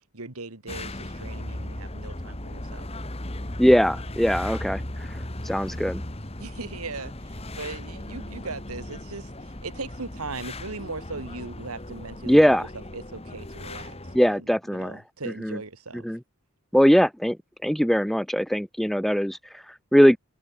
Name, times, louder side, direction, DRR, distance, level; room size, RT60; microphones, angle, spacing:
voice 1, 0.1-2.9 6.4-12.7 12.9-16.1, right 3 dB, 80° right, 2.4 m, -39 dB
sound 1, 0.7-14.2, left 1 dB, 25° left, 2.0 m, -37 dB
voice 2, 3.6-5.2 5.4-6.0 12.3-12.7 14.1-15.0 15.4-15.6 16.0-16.2 16.7-17.4 17.6-20.2, equal, ahead, 0.5 m, -21 dB
head